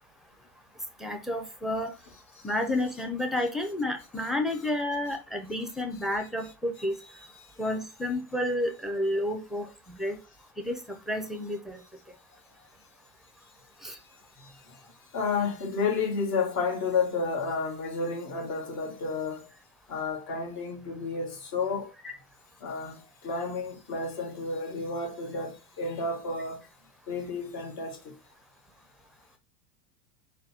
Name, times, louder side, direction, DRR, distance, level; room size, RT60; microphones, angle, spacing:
voice 1, 1.0-1.9 2.4-6.9 7.6-10.2 10.6-10.8 11.1-11.8 13.8-13.9 22.0-22.1, left 1 dB, ahead, 0.5 m, -30 dB
voice 2, 7.0-7.5 13.9-14.0 14.4-14.8 15.1-19.5 19.9-21.9 22.6-26.6 27.1-28.1, left 4 dB, 45° left, 1.7 m, -31 dB
4.0 x 2.3 x 4.2 m
hypercardioid pair, 110°, 48 cm